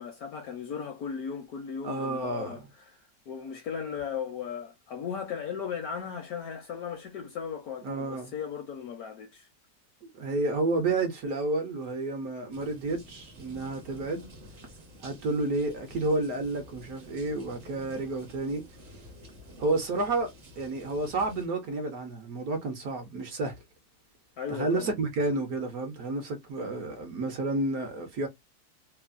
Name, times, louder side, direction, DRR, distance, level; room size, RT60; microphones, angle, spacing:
voice 1, 0.0-3.0 3.3-9.5 24.4-24.9, left 7 dB, 70° left, 0.9 m, -37 dB
voice 2, 1.8-2.6 7.8-8.3 10.0-14.3 15.0-18.6 18.9-19.0 19.6-20.3 20.6-23.5 24.5-28.3, right 2 dB, 65° right, 1.0 m, -30 dB
sound 1, 12.5-21.5, equal, 50° right, 0.6 m, -50 dB
3.1 x 2.0 x 2.3 m
omnidirectional pair, 2.0 m